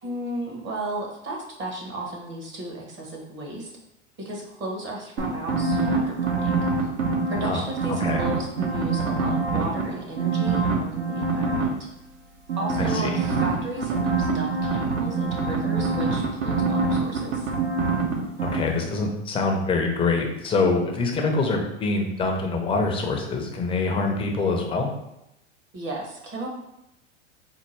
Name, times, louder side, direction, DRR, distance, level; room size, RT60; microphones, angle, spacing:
voice 1, 0.0-3.7 4.2-6.9 7.3-11.7 12.6-17.5 25.7-26.5, right 2 dB, 30° right, 0 dB, 0.9 m, -34 dB
sound 1, 5.2-7.4 7.8-9.8 10.2-11.6 12.5-18.1 18.4-18.6, right 4 dB, 65° right, 1.0 m, -24 dB
voice 2, 12.8-13.1 18.4-24.9, left 3 dB, 15° left, 1 dB, 0.5 m, -25 dB
4.4 x 2.2 x 3.2 m, 0.85 s
hypercardioid pair, 110°, 37 cm